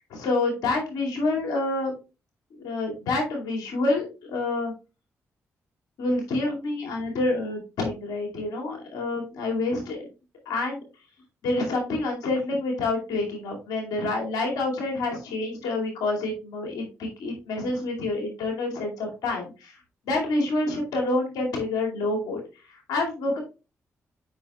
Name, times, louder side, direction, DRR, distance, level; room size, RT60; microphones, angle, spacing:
voice 1, 0.1-1.9 2.6-4.7 6.0-10.0 10.5-10.8 11.4-23.4, left 2 dB, 80° left, 0 dB, 2.3 m, -28 dB
7.3 x 5.8 x 2.3 m, 0.30 s
supercardioid pair, 45°, 6 cm